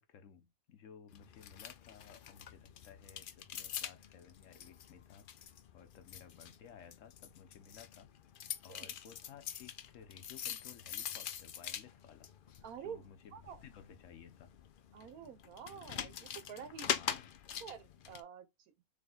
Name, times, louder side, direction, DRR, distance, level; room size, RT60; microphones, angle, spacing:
voice 1, 0.0-8.1 8.6-12.3 12.8-14.6 16.7-17.5, left 7 dB, 65° left, 1.0 m, -57 dB
sound 1, 1.1-18.2, left 9 dB, 85° left, 0.4 m, -45 dB
voice 2, 12.6-13.0 13.3-13.6 14.9-16.9 17.6-18.5, right 8 dB, 80° right, 1.3 m, -48 dB
3.5 x 3.3 x 3.8 m
omnidirectional pair, 1.5 m